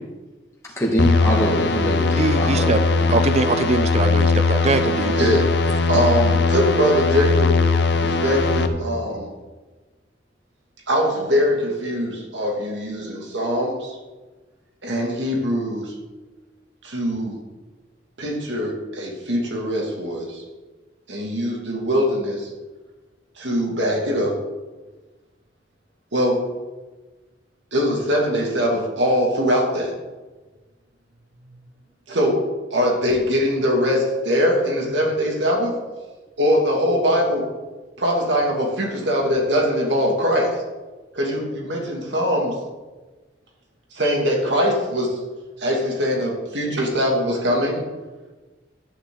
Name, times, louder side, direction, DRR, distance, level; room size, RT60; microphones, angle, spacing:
voice 1, 0.6-3.1, equal, 15° left, -4 dB, 2.0 m, -24 dB
sound 1, 1.0-8.7, left 4 dB, 60° left, 0.9 m, -20 dB
voice 2, 2.2-2.8 3.1-5.2, right 3 dB, 35° right, 10 dB, 0.4 m, -22 dB
voice 3, 5.1-7.6 8.0-9.3 10.9-14.0 14.8-15.9 16.8-17.4 18.2-20.4 21.1-22.5 23.4-24.4 26.1-26.4 27.7-29.9 32.1-35.8 36.4-37.5 38.0-40.6 41.1-42.5 43.9-45.1 45.6-47.8, equal, 75° right, 0 dB, 2.5 m, -22 dB
11.5 x 9.5 x 4.0 m, 1.2 s
head